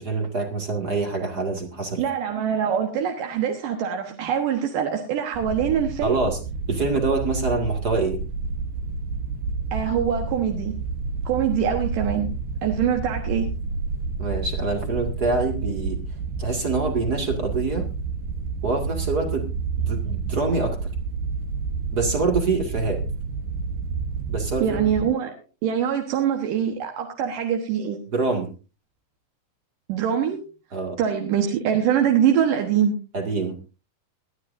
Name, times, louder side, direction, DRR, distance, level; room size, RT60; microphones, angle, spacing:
voice 1, 0.0-2.0 6.0-6.4 6.7-8.2 14.2-16.0 16.4-17.9 18.6-19.5 19.8-20.9 21.9-23.0 24.3-24.9 28.1-28.5 30.7-31.0 33.1-33.6, right 3 dB, 40° right, 3 dB, 1.4 m, -25 dB
voice 2, 2.0-6.2 9.7-10.8 11.3-12.3 12.6-13.5 24.6-25.3 25.6-28.0 29.9-30.4 31.0-33.0, right 8 dB, 65° right, 3 dB, 2.4 m, -23 dB
sound 1, 5.3-25.0, right 4 dB, 85° right, 1.7 m, -29 dB
21.0 x 13.0 x 2.6 m, 0.31 s
omnidirectional pair, 5.1 m